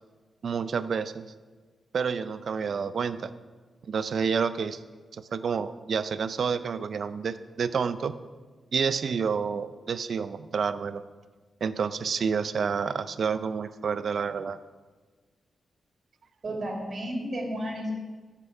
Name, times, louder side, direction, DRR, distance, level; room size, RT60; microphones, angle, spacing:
voice 1, 0.4-1.3 1.9-3.3 3.8-4.8 5.1-8.2 8.7-11.0 11.6-14.6, right 6 dB, 60° right, 13 dB, 0.5 m, -29 dB
voice 2, 16.4-17.9, equal, 45° right, -2 dB, 3.1 m, -32 dB
14.0 x 6.1 x 5.4 m, 1.4 s
cardioid pair, 100°, 0 cm